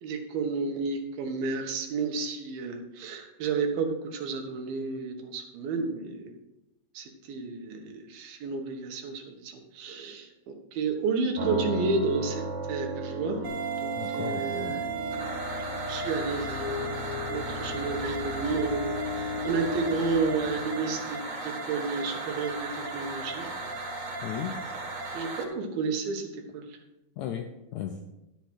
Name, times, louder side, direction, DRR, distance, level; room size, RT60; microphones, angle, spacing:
voice 1, 0.0-6.3 6.9-10.3 10.7-12.4 12.7-13.4 13.8-14.9 15.9-17.0 17.3-23.5 25.1-26.3 26.5-26.7, right 4 dB, 90° right, 3 dB, 3.2 m, -31 dB
sound 1, 11.4-25.2, right 2 dB, 65° right, 2.2 m, -39 dB
sound 2, 13.4-25.4, right 4 dB, 40° right, 1.2 m, -36 dB
voice 2, 14.0-14.8 24.2-24.6 27.2-28.0, left 9 dB, 85° left, 5 dB, 1.6 m, -35 dB
sound 3, 14.6-21.5, left 4 dB, 55° left, 0.8 m, -37 dB
12.0 x 6.7 x 4.5 m, 0.90 s
omnidirectional pair, 4.1 m